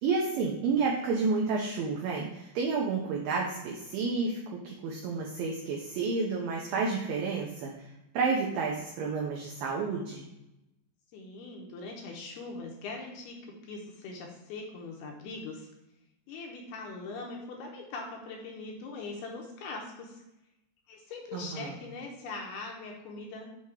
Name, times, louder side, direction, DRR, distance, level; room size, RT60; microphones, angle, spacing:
voice 1, 0.0-10.3 21.3-21.8, right 4 dB, 90° right, -1 dB, 2.0 m, -30 dB
voice 2, 11.1-15.7 16.3-20.2 20.9-23.5, left 3 dB, 80° left, 1 dB, 2.4 m, -41 dB
7.4 x 2.8 x 4.6 m, 0.89 s
omnidirectional pair, 4.9 m